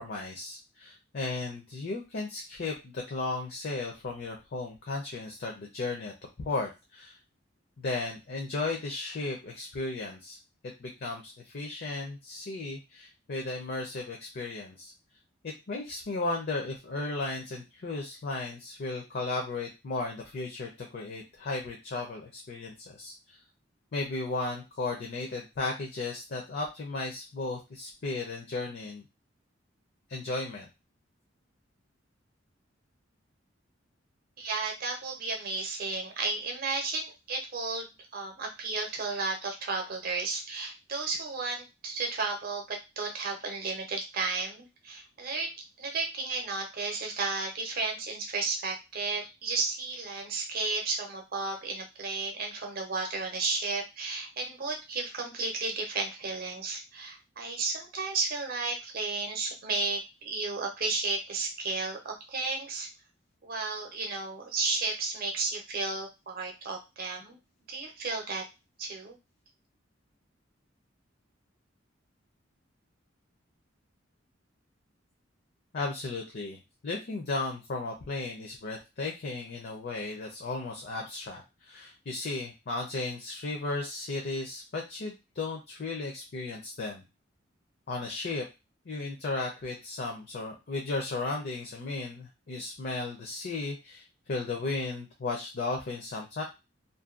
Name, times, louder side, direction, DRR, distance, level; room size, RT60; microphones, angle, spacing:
voice 1, 0.0-7.2 7.8-10.4 10.8-14.9 15.4-23.4 23.9-29.0 30.1-30.7 75.7-87.0 87.9-88.4 88.9-96.4, left 3 dB, 55° left, 0 dB, 0.5 m, -35 dB
voice 2, 34.4-45.5 45.8-62.9 63.4-67.4 67.7-68.4 68.8-69.2, right 3 dB, 50° right, 2 dB, 0.6 m, -33 dB
2.6 x 2.2 x 2.4 m, 0.25 s
head